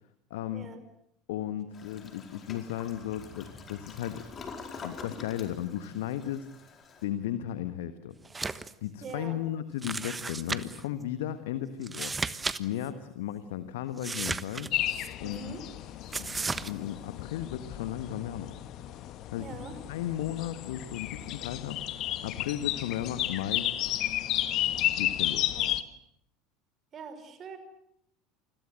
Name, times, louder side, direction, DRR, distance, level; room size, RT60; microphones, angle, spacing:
voice 1, 0.3-0.7 1.3-4.2 4.8-6.5 7.0-8.1 8.8-12.1 12.6-14.7 15.2-15.5 16.2-16.3 16.6-18.5 19.3-19.6 19.9-23.7 25.0-25.5, left 11 dB, 65° left, 12 dB, 1.4 m, -35 dB
Toilet flush, 1.7-7.1, left 4 dB, 30° left, 4.6 m, -46 dB
sound 1, 8.2-8.7 9.0-9.1 9.8-10.8 11.8-12.6 12.8-12.9 14.0-15.1 16.1-16.7, right 4 dB, 15° right, 1.2 m, -34 dB
voice 2, 9.0-9.4 15.2-15.6 19.4-19.8 25.6-25.7 26.9-27.6, right 5 dB, 35° right, 9 dB, 5.3 m, -43 dB
sound 2, 14.7-25.8, left 13 dB, 45° left, 1.5 m, -33 dB
28.5 x 22.0 x 7.8 m, 0.74 s
figure-of-eight pair, 70°, 0 cm